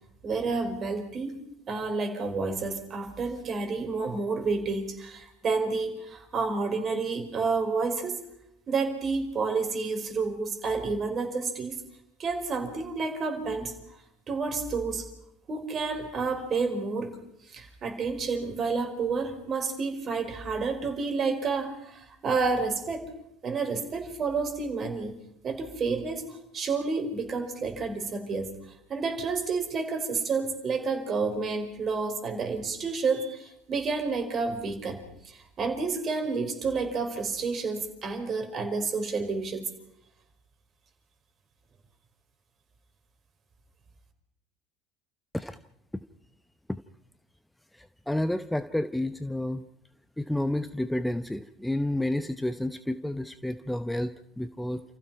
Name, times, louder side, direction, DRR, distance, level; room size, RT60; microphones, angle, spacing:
voice 1, 0.2-1.4 1.7-8.2 8.7-11.8 12.2-13.7 14.3-15.1 15.5-17.2 17.4-23.1 23.4-25.1 25.4-28.5 28.9-39.7, right 4 dB, 35° right, 5 dB, 5.0 m, -30 dB
voice 2, 47.8-49.6 50.2-54.8, left 1 dB, 5° left, 11 dB, 0.9 m, -30 dB
29.5 x 15.5 x 5.8 m, 0.79 s
figure-of-eight pair, 65°, 0 cm